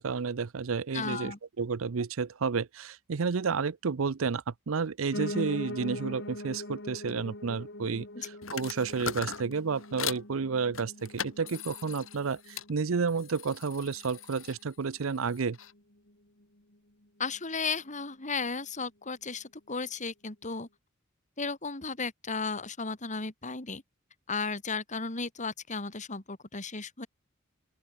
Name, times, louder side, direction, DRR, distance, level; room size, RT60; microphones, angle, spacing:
voice 1, 0.0-15.6, right 5 dB, 80° right, 0.6 m, -31 dB
voice 2, 0.9-1.4 8.1-8.3 17.2-20.7 21.4-23.8 24.3-27.1, left 4 dB, 35° left, 2.9 m, -34 dB
Piano, 5.1-14.2 14.6-15.8 16.1-16.2 16.4-16.5 16.7-16.8 17.4-17.5, left 1 dB, 60° left, 5.5 m, -42 dB
sound 1, 8.4-10.3 10.7-12.7 13.1-15.7, left 7 dB, 75° left, 7.4 m, -40 dB
open air
head